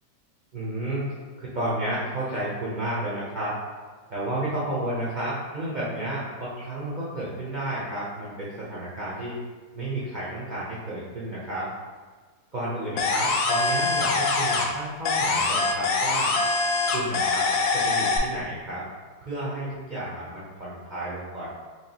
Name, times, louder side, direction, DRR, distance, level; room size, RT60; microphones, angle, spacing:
voice 1, 0.5-1.0 1.4-3.6 4.1-9.4 9.7-11.7 12.5-16.4 16.9-18.8 19.2-21.5, right 1 dB, 90° right, -8 dB, 0.4 m, -31 dB
sound 1, 13.0-14.8 15.0-18.2, left 3 dB, 70° left, 0.8 m, -24 dB
4.6 x 2.8 x 2.8 m, 1.4 s
omnidirectional pair, 1.9 m